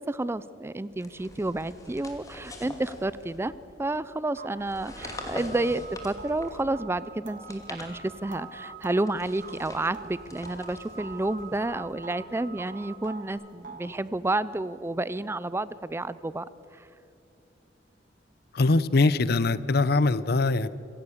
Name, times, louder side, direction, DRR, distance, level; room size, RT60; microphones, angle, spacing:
voice 1, 0.0-3.5 3.8-16.5 16.7-16.9, right 2 dB, 15° right, 17 dB, 0.4 m, -30 dB
sound 1, 0.9-3.7 4.6-6.8 7.3-8.5 9.0-11.9, left 1 dB, 20° left, 2.6 m, -44 dB
sound 2, 3.8-3.9 4.4-10.7 11.0-12.3 12.6-14.0, right 4 dB, 50° right, 1.9 m, -46 dB
sound 3, 4.8-13.3, right 5 dB, 75° right, 4.5 m, -47 dB
voice 2, 18.5-20.7, left 3 dB, 60° left, 17 dB, 0.7 m, -22 dB
25.5 x 16.5 x 7.2 m, 2.7 s
head